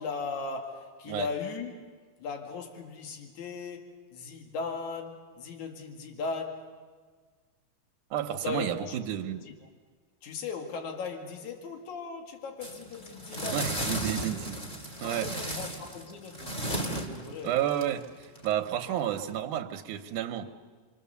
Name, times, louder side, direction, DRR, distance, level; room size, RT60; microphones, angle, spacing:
voice 1, 0.0-1.7 2.2-6.7 8.3-9.0 10.2-14.0 15.0-17.5, left 4 dB, 70° left, 2 dB, 3.4 m, -38 dB
voice 2, 8.1-9.4 13.4-14.7 15.0-15.6 17.4-20.5, right 10 dB, 90° right, 6 dB, 2.4 m, -31 dB
sound 1, 12.6-19.4, right 1 dB, 15° left, 2.2 m, -35 dB
28.5 x 23.5 x 7.0 m, 1.5 s
omnidirectional pair, 3.5 m